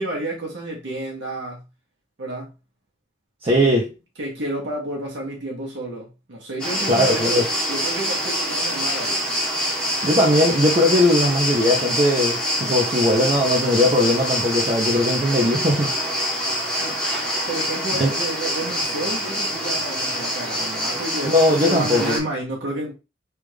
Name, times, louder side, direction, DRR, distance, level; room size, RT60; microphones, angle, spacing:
voice 1, 0.0-1.6 2.2-2.5 3.5-3.8 4.2-9.3 16.8-17.0 17.5-22.9, right 1 dB, 70° right, 1.0 m, -30 dB
voice 2, 3.4-3.9 6.9-7.5 10.0-15.9 18.0-18.1 21.2-22.2, left 1 dB, 30° right, 0.6 m, -19 dB
sound 1, 6.6-22.2, equal, 5° left, 0.9 m, -25 dB
3.4 x 2.4 x 3.2 m
head